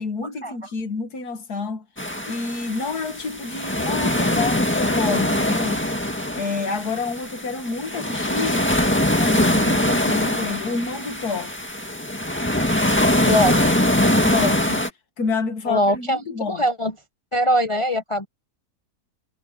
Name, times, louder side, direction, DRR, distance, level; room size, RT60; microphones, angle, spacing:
voice 1, 0.0-1.9 2.3-5.9 6.3-8.7 9.1-11.5 14.2-14.9 15.2-16.6, left 4 dB, 80° left, 2.3 m, -28 dB
sound 1, 2.0-14.9, left 1 dB, 10° left, 1.7 m, -22 dB
voice 2, 13.3-13.8 15.7-16.2 16.5-16.9 17.3-18.3, equal, 35° left, 0.5 m, -21 dB
omnidirectional pair, 1.6 m